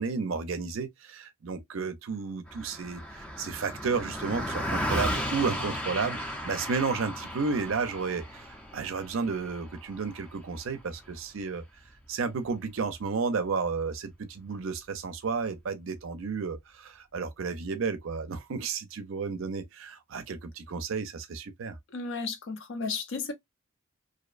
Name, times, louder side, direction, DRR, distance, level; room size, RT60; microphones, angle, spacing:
voice 1, 0.0-11.6 12.1-21.8, right 5 dB, 65° right, 0.5 m, -32 dB
Car passing by, 2.5-12.1, equal, 5° left, 0.4 m, -35 dB
voice 2, 21.9-23.3, left 4 dB, 65° left, 0.6 m, -33 dB
2.6 x 2.0 x 2.3 m
head